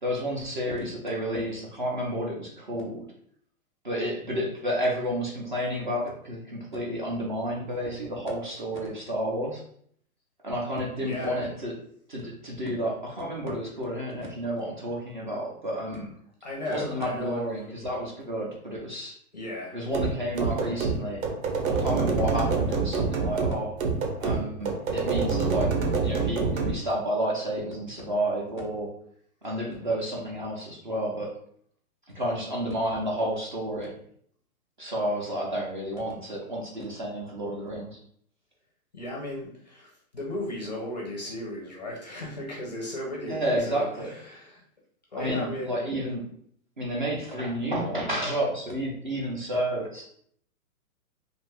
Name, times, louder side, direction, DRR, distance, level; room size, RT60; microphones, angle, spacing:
voice 1, 0.0-3.1 3.8-9.6 10.4-11.7 12.1-16.1 16.7-19.1 19.7-21.2 21.7-23.7 24.2-25.7 26.0-28.9 29.4-31.3 32.1-33.9 34.8-38.0 43.3-44.1 45.1-46.3 46.8-50.0, equal, 35° right, -3 dB, 0.4 m, -30 dB
voice 2, 11.0-11.5 16.4-17.4 19.3-19.8 38.9-44.6 45.1-45.8, left 1 dB, 30° left, -2 dB, 0.4 m, -35 dB
sound 1, 19.9-26.8, right 4 dB, 65° right, 0.8 m, -27 dB
2.5 x 2.3 x 3.2 m, 0.64 s
hypercardioid pair, 160°, 45 cm